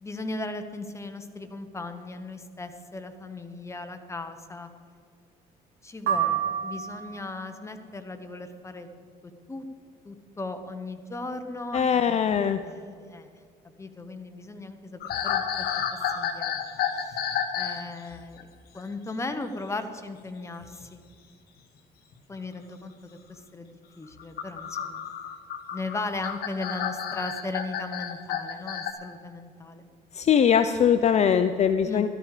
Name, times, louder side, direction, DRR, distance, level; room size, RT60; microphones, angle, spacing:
voice 1, 0.0-4.7 5.8-8.9 9.5-9.6 10.0-13.3 13.8-15.7 16.1-16.5 17.1-17.2 17.5-18.5 18.7-21.0 22.3-25.0 25.7-29.8 31.9-32.1, left 2 dB, 15° left, 7 dB, 1.2 m, -37 dB
sound 1, 6.1-7.3, right 9 dB, 80° right, 2.2 m, -28 dB
voice 2, 11.7-12.6 30.1-32.1, left 8 dB, 40° left, 10 dB, 0.6 m, -21 dB
sound 2, 15.0-17.8 18.1-18.4 20.6-20.8 22.1-22.2 24.1-28.9, left 8 dB, 65° left, 1.3 m, -31 dB
14.0 x 13.0 x 5.0 m, 2.1 s
cardioid pair, 110°, 17 cm